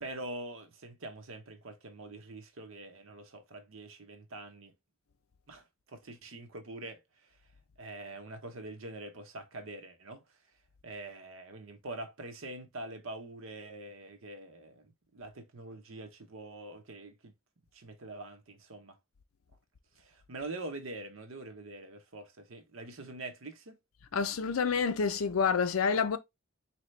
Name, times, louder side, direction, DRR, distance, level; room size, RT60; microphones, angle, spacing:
voice 1, 0.0-4.7 5.5-7.4 7.8-10.2 10.8-17.3 17.7-19.0 20.0-23.8, right 2 dB, 70° right, 0.9 m, -44 dB
voice 2, 24.1-26.2, left 6 dB, 85° left, 0.5 m, -28 dB
4.3 x 2.9 x 3.1 m
head